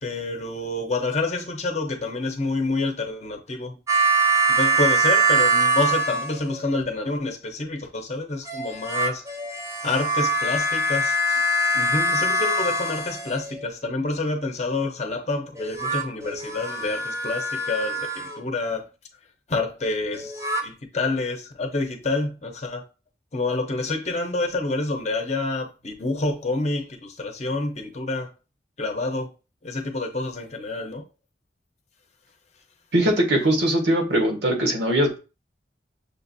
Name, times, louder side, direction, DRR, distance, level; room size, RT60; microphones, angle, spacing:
voice 1, 0.0-3.8 4.5-9.3 9.8-11.4 11.7-18.9 19.5-22.9 23.3-28.3 28.8-29.3 29.6-31.0, left 3 dB, 40° left, 0.7 m, -28 dB
sound 1, 3.9-6.7 8.5-13.7 15.6-18.4 20.1-20.6, right 2 dB, 15° right, 0.6 m, -23 dB
voice 2, 32.9-35.2, right 1 dB, 85° right, 1.3 m, -21 dB
6.5 x 2.5 x 2.6 m
head